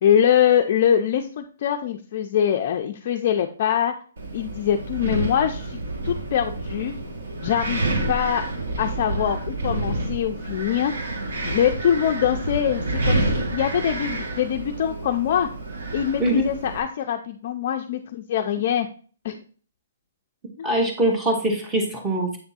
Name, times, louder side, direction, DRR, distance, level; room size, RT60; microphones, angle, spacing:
voice 1, 0.0-3.9 4.3-5.8 6.0-6.9 7.4-8.4 8.8-10.9 11.4-15.5 15.9-18.9 19.2-19.4 20.6-20.7, left 9 dB, 35° left, 4 dB, 0.4 m, -23 dB
Wind, 4.2-16.8, right 2 dB, 65° right, 1.5 m, -29 dB
voice 2, 20.6-22.4, right 1 dB, 5° right, 1 dB, 0.9 m, -22 dB
7.9 x 3.5 x 4.1 m, 0.41 s
hypercardioid pair, 175°, 0 cm